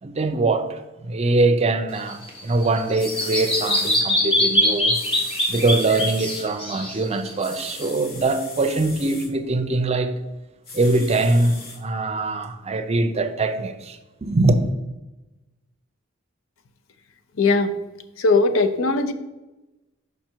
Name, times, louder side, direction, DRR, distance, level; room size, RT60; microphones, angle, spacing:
voice 1, 0.0-5.0 5.5-10.2 10.7-14.6, right 2 dB, 30° right, 0.5 m, -22 dB
Bird vocalization bird call bird song, 1.9-7.8, left 1 dB, 25° left, 1.4 m, -23 dB
sound 1, 2.7-2.8 3.0-4.0 4.9-6.5 7.4-9.3 10.6-11.8 12.4-12.5, left 3 dB, 50° left, 1.3 m, -38 dB
voice 2, 17.4-17.7 18.2-19.1, left 3 dB, 80° left, 0.6 m, -19 dB
6.0 x 5.4 x 4.5 m
head